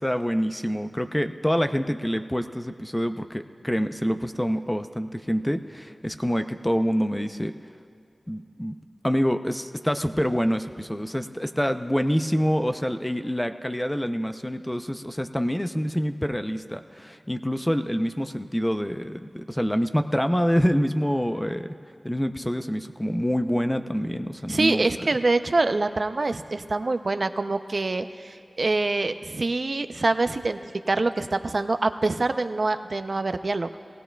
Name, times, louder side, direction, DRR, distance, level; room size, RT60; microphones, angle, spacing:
voice 1, 0.0-7.5 8.3-8.8 9.0-21.7 22.0-24.8, equal, 10° left, 8 dB, 0.5 m, -26 dB
voice 2, 24.5-30.6 30.9-33.7, right 3 dB, 60° right, 9 dB, 0.4 m, -25 dB
19.5 x 16.5 x 2.2 m, 2.5 s
wide cardioid pair, 65°, 0 cm